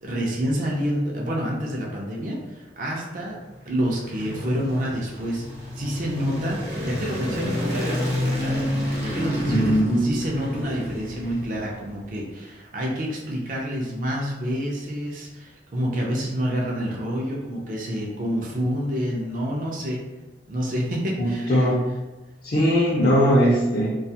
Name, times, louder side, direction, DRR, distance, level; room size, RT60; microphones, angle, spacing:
voice 1, 0.0-3.4 3.7-5.5 5.7-8.7 9.0-20.0 20.5-21.7, equal, 45° right, -2 dB, 0.4 m, -28 dB
sound 1, 3.4-11.8, left 1 dB, 75° right, 0.9 m, -30 dB
voice 2, 9.5-10.1 21.2-21.8 22.4-23.9, equal, 50° left, -7 dB, 0.5 m, -20 dB
2.4 x 2.3 x 2.7 m, 1.1 s
head